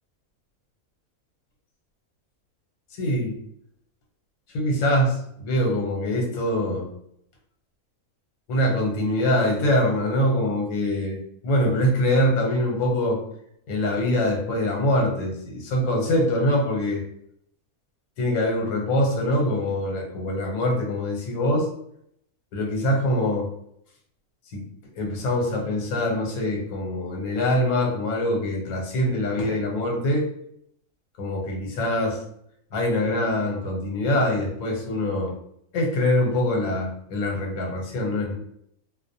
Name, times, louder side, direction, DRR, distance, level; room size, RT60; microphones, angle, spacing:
voice 1, 3.0-3.4 4.5-6.9 8.5-13.2 13.7-17.0 18.2-21.7 22.5-23.5 24.5-24.6 24.9-30.2 31.2-32.2 32.7-35.3 35.7-38.3, left 1 dB, 75° left, 0 dB, 1.2 m, -24 dB
2.5 x 2.0 x 2.6 m, 0.71 s
omnidirectional pair, 1.5 m